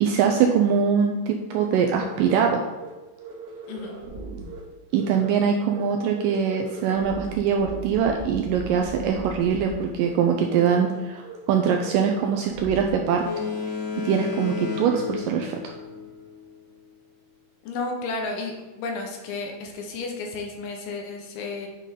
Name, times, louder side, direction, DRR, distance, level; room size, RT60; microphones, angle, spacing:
voice 1, 0.0-2.6 4.9-13.3 14.1-15.7, right 7 dB, 80° right, 3 dB, 2.0 m, -23 dB
sound 1, 1.5-1.6 2.0-2.5 2.7-2.9 3.2-4.6 4.9-5.4 5.7-5.8 6.1-9.7 10.0-10.1 10.4-11.0 11.2-11.4 11.6-12.9, right 3 dB, 50° right, 2.9 m, -38 dB
voice 2, 3.7-4.0 17.6-21.7, left 3 dB, 85° left, 1 dB, 3.0 m, -32 dB
Boat Water vehicle, 13.2-16.4, left 4 dB, 30° left, 2.9 m, -32 dB
9.1 x 5.6 x 3.7 m, 1.2 s
omnidirectional pair, 4.3 m